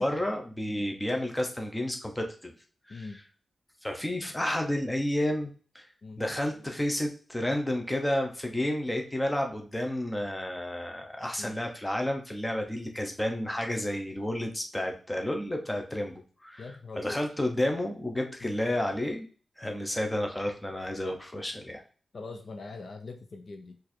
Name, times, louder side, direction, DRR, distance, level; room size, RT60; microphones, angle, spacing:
voice 1, 0.0-2.5 2.9-3.1 3.8-5.9 6.2-16.7 16.9-19.3 19.6-21.8, left 1 dB, 10° left, 3 dB, 0.7 m, -31 dB
voice 2, 2.9-3.2 6.0-6.2 11.4-11.5 16.6-17.2 18.4-18.5 22.1-23.8, left 3 dB, 45° left, 5 dB, 0.5 m, -42 dB
4.7 x 2.6 x 4.2 m, 0.39 s
wide cardioid pair, 180°, 0 cm